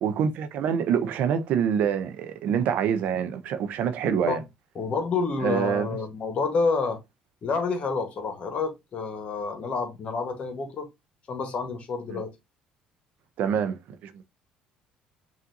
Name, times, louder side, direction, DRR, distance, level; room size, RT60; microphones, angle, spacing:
voice 1, 0.0-4.4 5.4-6.0 12.1-12.2 13.4-13.8 14.0-14.1, right 8 dB, 65° right, 0.6 m, -26 dB
voice 2, 4.0-4.4 4.7-7.0 7.4-10.9 11.3-12.3, left 4 dB, 45° left, 1.2 m, -28 dB
5.8 x 2.5 x 2.6 m
supercardioid pair, 75°, 3 cm